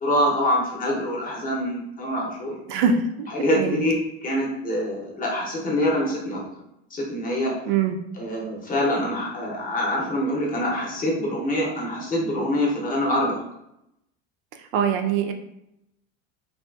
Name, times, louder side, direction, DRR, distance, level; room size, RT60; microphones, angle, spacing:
voice 1, 0.0-2.6 3.3-3.9 4.2-6.4 6.9-7.5 8.2-13.4, left 1 dB, 25° left, -2 dB, 0.7 m, -25 dB
voice 2, 2.7-3.8 7.7-8.0 14.6-15.3, right 6 dB, 75° right, 5 dB, 0.5 m, -23 dB
2.8 x 2.3 x 2.2 m, 0.83 s
supercardioid pair, 125°, 33 cm